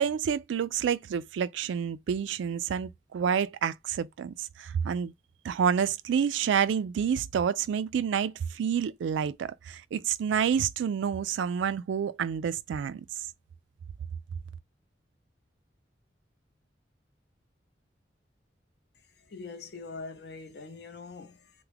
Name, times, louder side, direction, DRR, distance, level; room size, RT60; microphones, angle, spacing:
voice 1, 0.0-5.1 5.4-13.1, right 7 dB, 85° right, 0.3 m, -28 dB
voice 2, 19.3-21.5, left 4 dB, 60° left, 0.6 m, -43 dB
3.4 x 2.1 x 3.3 m
head